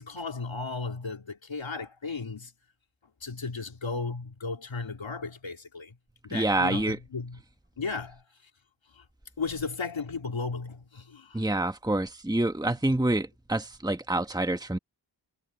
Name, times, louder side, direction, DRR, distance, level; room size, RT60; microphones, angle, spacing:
voice 1, 0.0-2.5 3.2-5.9 6.2-7.4 7.8-8.2 9.4-11.4 12.9-13.0, left 4 dB, 90° left, 3.0 m, -35 dB
voice 2, 6.3-7.0 11.3-14.8, right 1 dB, 10° right, 1.4 m, -27 dB
wide cardioid pair, 45°, 45 cm